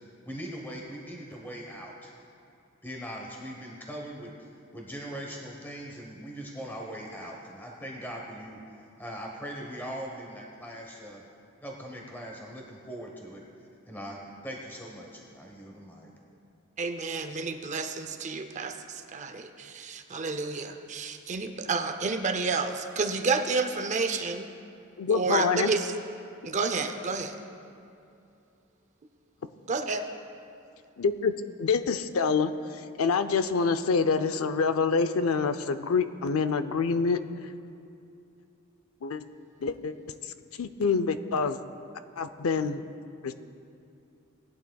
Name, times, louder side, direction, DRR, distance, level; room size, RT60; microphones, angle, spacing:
voice 1, 0.3-2.1 2.8-8.6 9.0-11.2 11.6-13.4 13.9-16.1, equal, 10° left, -1 dB, 1.0 m, -40 dB
voice 2, 16.8-24.5 25.1-25.9 26.4-27.4 29.7-30.0, right 4 dB, 35° right, 6 dB, 0.5 m, -30 dB
voice 3, 25.0-25.7 31.0-31.3 31.6-37.2 39.0-39.2 39.6-39.9 40.2-41.6 42.2-42.8 43.2-43.3, left 5 dB, 85° left, 10 dB, 0.5 m, -26 dB
19.0 x 11.5 x 2.3 m, 2.6 s
head